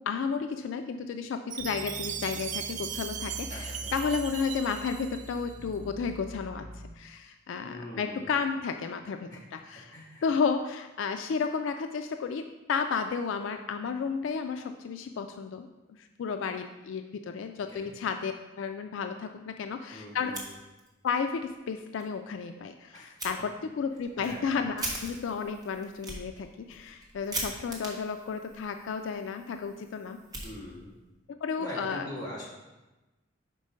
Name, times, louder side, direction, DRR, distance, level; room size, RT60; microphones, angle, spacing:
voice 1, 0.0-9.9 10.2-15.7 16.0-20.3 21.0-30.2 31.4-32.1, left 5 dB, 75° left, 7 dB, 0.3 m, -32 dB
Chime, 1.5-5.6, right 9 dB, 40° right, 0.3 m, -38 dB
sound 1, 1.6-6.9, left 1 dB, 75° right, 1.0 m, -45 dB
voice 2, 3.5-3.9 7.6-8.3 9.3-9.4 9.9-10.2 17.7-17.9 19.9-20.5 22.9-23.1 24.1-24.5 30.4-30.9 31.6-32.5, left 1 dB, 20° left, -7 dB, 1.9 m, -42 dB
Fire, 20.2-21.1 21.4-21.5 22.0-22.1 23.2-23.3 23.9-31.0, right 1 dB, 20° right, 1.1 m, -41 dB
5.3 x 4.4 x 5.0 m, 1.1 s
head